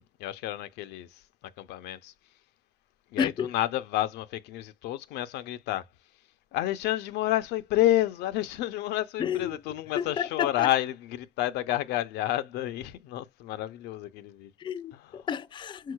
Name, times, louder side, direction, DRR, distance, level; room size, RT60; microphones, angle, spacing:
voice 1, 0.0-2.1 3.1-5.9 6.5-14.5 14.9-15.3, left 14 dB, 85° left, 0.5 m, -30 dB
voice 2, 3.2-3.5 9.2-9.6 10.0-10.7 14.6-15.9, left 7 dB, 30° left, 0.3 m, -31 dB
4.7 x 3.9 x 2.2 m
cardioid pair, 110°, 17 cm